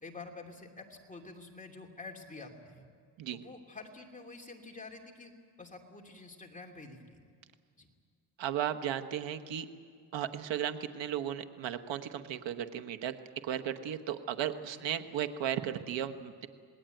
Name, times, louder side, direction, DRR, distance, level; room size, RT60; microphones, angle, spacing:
voice 1, 0.0-2.9 3.3-5.3 5.6-7.2 7.8-7.9 14.5-14.8, left 3 dB, 15° left, 1 dB, 2.7 m, -48 dB
voice 2, 8.4-9.7 10.1-13.1 13.4-16.5, right 10 dB, 90° right, 7 dB, 1.3 m, -35 dB
27.0 x 20.0 x 9.2 m, 2.1 s
cardioid pair, 115°, 43 cm